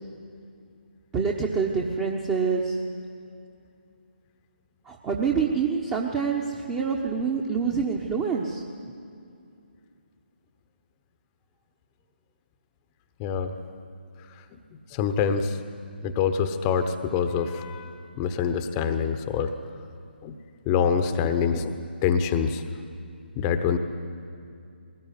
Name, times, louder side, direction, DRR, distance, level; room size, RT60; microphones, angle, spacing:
voice 1, 1.1-2.8 4.9-6.4 6.7-8.6, right 5 dB, 15° right, 0 dB, 1.2 m, -26 dB
voice 2, 13.2-13.5 14.9-15.6 16.0-19.5 20.2-20.4 20.7-21.8 22.0-22.6 23.4-23.8, left 7 dB, 20° left, 9 dB, 1.0 m, -25 dB
21.5 x 19.0 x 9.6 m, 2.5 s
figure-of-eight pair, 140°, 6 cm